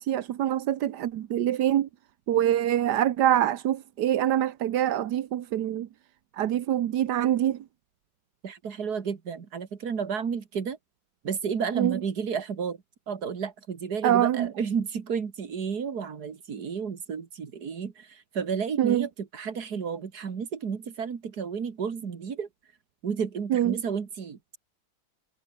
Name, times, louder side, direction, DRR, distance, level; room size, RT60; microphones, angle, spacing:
voice 1, 0.0-1.9 2.3-5.9 6.3-7.6 11.8-12.0 14.0-14.5 18.8-19.0 23.5-23.8, right 11 dB, 90° right, 1.5 m, -25 dB
voice 2, 8.4-10.8 11.2-12.8 13.1-22.5 23.0-24.4, right 6 dB, 70° right, 2.4 m, -32 dB
omnidirectional pair, 1.7 m